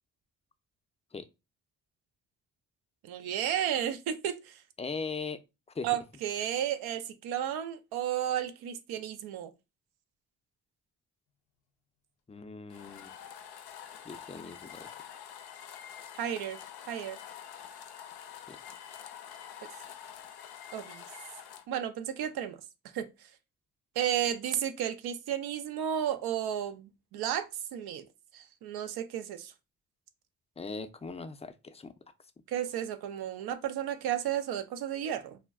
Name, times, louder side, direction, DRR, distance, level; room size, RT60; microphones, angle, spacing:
voice 1, 3.0-4.6 5.8-9.5 16.2-16.6 16.9-17.2 20.7-21.1 21.7-22.6 22.9-23.1 24.0-28.1 28.3-29.5 32.5-35.4, right 10 dB, 80° right, 0.5 m, -33 dB
voice 2, 4.8-5.4 5.7-5.9 12.3-13.1 14.0-14.9 18.5-18.6 30.6-31.9, left 4 dB, 20° left, 0.4 m, -39 dB
sound 1, 12.7-21.6, left 9 dB, 90° left, 0.5 m, -47 dB
2.2 x 2.1 x 3.4 m
supercardioid pair, 55°, 37 cm